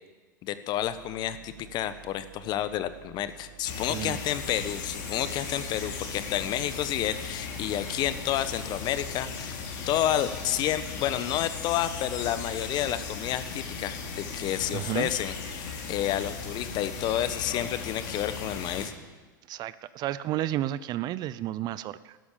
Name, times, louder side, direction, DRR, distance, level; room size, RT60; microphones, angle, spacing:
voice 1, 0.4-9.6 9.9-15.3 15.6-18.9, left 11 dB, 40° left, 13 dB, 1.1 m, -30 dB
sound 1, 0.8-17.1, right 9 dB, 70° right, 1.7 m, -51 dB
sound 2, 3.6-18.9, left 5 dB, 60° left, 3.2 m, -37 dB
voice 2, 3.9-4.2 14.7-15.1 19.5-22.2, right 13 dB, 40° right, 17 dB, 0.6 m, -32 dB
12.5 x 12.0 x 8.6 m, 1.3 s
hypercardioid pair, 95°, 11 cm